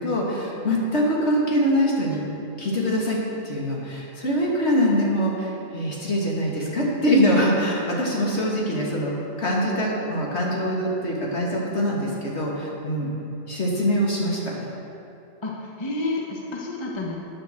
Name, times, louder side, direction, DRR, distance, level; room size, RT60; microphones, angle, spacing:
voice 1, 0.0-2.2 2.6-3.2 3.4-9.1 9.4-13.1 13.5-14.6, equal, 60° left, -4 dB, 2.5 m, -23 dB
voice 2, 15.4-17.2, left 2 dB, 25° left, -2 dB, 1.1 m, -30 dB
14.0 x 9.4 x 4.5 m, 2.9 s
omnidirectional pair, 1.3 m